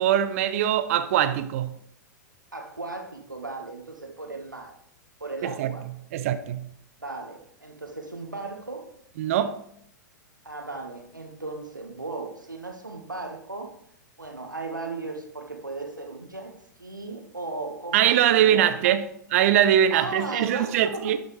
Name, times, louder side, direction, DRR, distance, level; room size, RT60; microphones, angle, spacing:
voice 1, 0.0-1.8 5.4-5.7 6.1-6.7 9.2-9.6 17.9-21.2, right 10 dB, 45° right, 0.6 m, -22 dB
voice 2, 2.5-4.8 5.2-5.9 7.0-8.9 10.4-13.8 14.2-19.0 19.9-21.2, right 3 dB, 85° right, 1.6 m, -36 dB
11.5 x 6.3 x 3.3 m
figure-of-eight pair, 100°, 10 cm